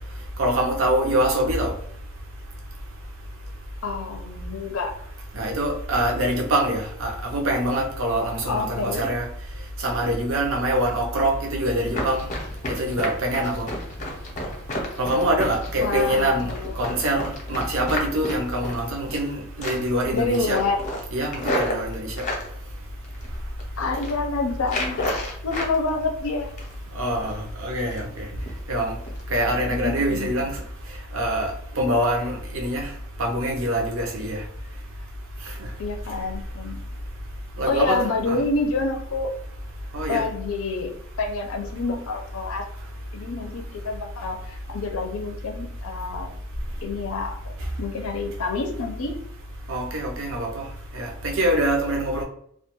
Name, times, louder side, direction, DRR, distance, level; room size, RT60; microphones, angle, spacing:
voice 1, 0.4-1.7 5.3-9.3 9.8-12.3 12.7-13.7 15.0-16.5 16.8-20.6 21.1-22.2 27.0-28.2 28.7-28.9 29.3-30.6 31.1-32.9 33.2-34.4 37.6-38.0 38.3-38.4 39.9-40.2 49.7-50.6 50.9-52.2, right 1 dB, 65° right, 1 dB, 0.6 m, -24 dB
voice 2, 3.8-4.9 8.5-9.1 15.8-16.7 20.1-20.9 23.8-25.1 25.4-26.5 29.7-30.5 35.8-36.8 37.7-39.3 40.1-40.9 41.2-42.6 43.1-46.3 46.8-47.5 47.8-49.2, left 3 dB, 80° left, 4 dB, 0.5 m, -27 dB
Run, 11.9-19.3 19.6-20.0 20.3-22.5 23.0-23.6 23.9-24.2 24.6-25.7 26.1-26.9 27.2-27.4 27.8-28.1 28.5-28.6 29.1-29.2 29.6-29.7, left 1 dB, 35° left, 0.6 m, -31 dB
2.3 x 2.2 x 2.9 m, 0.67 s
head